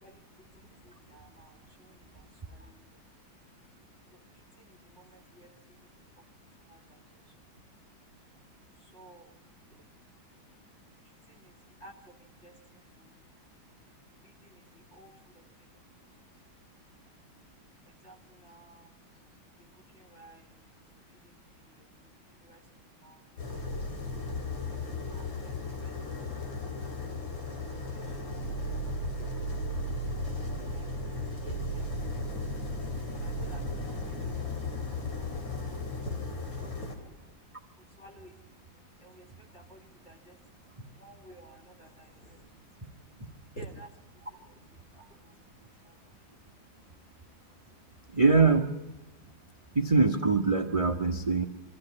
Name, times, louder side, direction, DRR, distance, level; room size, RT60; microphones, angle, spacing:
voice 1, 0.0-2.8 4.1-6.2 6.7-7.3 8.8-9.3 9.7-9.8 11.0-13.1 14.2-15.9 17.9-18.9 19.6-20.5 21.2-21.9 22.3-23.2 25.1-26.0 27.6-28.6 29.2-29.8 30.5-34.7 35.2-35.5 35.9-37.3 37.8-38.4 39.0-40.4 41.0-42.5 43.5-43.9 44.3-45.4 45.8-45.9, right 1 dB, 35° left, 3 dB, 2.8 m, -52 dB
sound 1, 23.4-37.0, left 2 dB, 70° left, 3.7 m, -35 dB
voice 2, 48.1-48.7 49.7-51.4, right 4 dB, 25° right, 5 dB, 0.8 m, -23 dB
23.5 x 14.5 x 9.7 m, 1.0 s
omnidirectional pair, 2.2 m